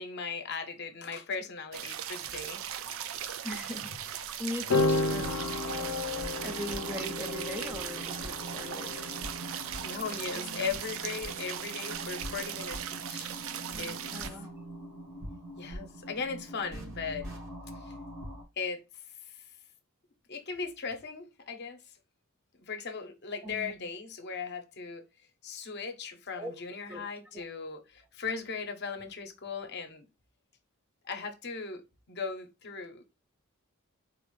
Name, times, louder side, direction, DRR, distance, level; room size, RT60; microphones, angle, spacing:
voice 1, 0.0-3.0 9.8-13.3 13.8-14.0 15.6-17.3 17.8-17.9 18.6-18.8 19.3-19.4 20.3-21.8 22.6-25.1 25.4-30.0 31.0-31.8 32.1-33.1, left 5 dB, 50° left, 0.7 m, -38 dB
sound 1, 1.7-14.3, right 10 dB, 70° right, 0.4 m, -38 dB
voice 2, 3.4-5.8 6.4-9.2 14.1-14.5 23.4-23.9 26.3-26.5 26.9-27.1 27.3-27.4, left 1 dB, 10° right, 0.5 m, -41 dB
sound 2, 3.6-4.2 4.7-16.8, left 3 dB, 90° left, 0.5 m, -36 dB
sound 3, 4.8-18.4, equal, 85° right, 1.6 m, -44 dB
4.1 x 2.4 x 3.1 m
head